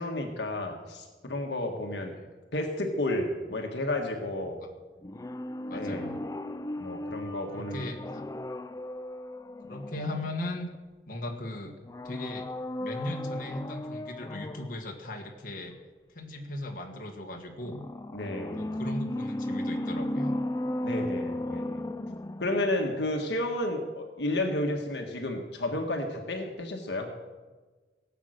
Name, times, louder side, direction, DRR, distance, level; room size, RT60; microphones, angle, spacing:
voice 1, 0.0-2.2 2.5-4.6 5.7-6.0 6.8-7.9 18.1-18.7 20.8-21.8 22.4-27.1, left 1 dB, 75° left, 3 dB, 1.6 m, -32 dB
sound 1, 5.0-10.8 11.8-14.8 17.6-22.8 23.1-23.2, left 1 dB, 20° left, 0.4 m, -35 dB
voice 2, 5.7-6.2 7.5-8.2 9.7-10.7 11.1-12.5 12.8-15.8 16.1-17.8 18.6-20.3, left 1 dB, 50° left, 1 dB, 1.7 m, -37 dB
17.5 x 8.3 x 6.5 m, 1.3 s
head